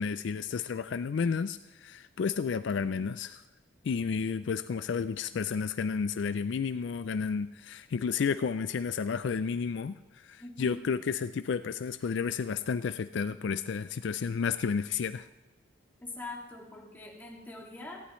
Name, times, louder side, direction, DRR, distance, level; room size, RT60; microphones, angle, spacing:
voice 1, 0.0-3.4 3.8-15.3, left 6 dB, 60° left, 12 dB, 0.3 m, -31 dB
voice 2, 10.4-10.9 16.0-18.0, left 2 dB, 10° left, -3 dB, 2.3 m, -43 dB
18.5 x 14.5 x 3.1 m, 1.1 s
head